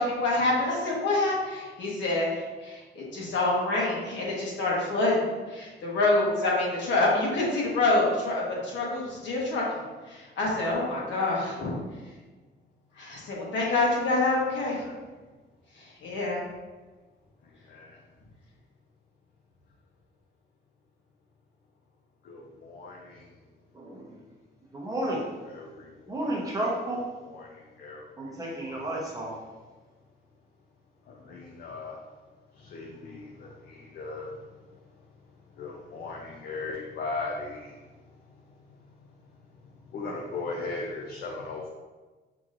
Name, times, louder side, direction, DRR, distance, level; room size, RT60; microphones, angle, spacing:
voice 1, 0.0-9.6 10.1-11.8 13.0-14.8 16.0-16.4, left 2 dB, 80° left, -4 dB, 1.3 m, -26 dB
voice 2, 17.4-18.0 22.2-23.3 25.5-26.4 27.2-28.3 28.6-28.9 31.1-32.0 32.5-34.7 35.6-37.8 39.8-41.7, left 3 dB, 55° left, -1 dB, 0.5 m, -38 dB
voice 3, 23.7-24.2 24.7-25.3 26.1-27.0 28.2-29.4, right 1 dB, 20° right, -4 dB, 0.8 m, -32 dB
6.0 x 2.9 x 2.5 m, 1.3 s
cardioid pair, 180°, 19 cm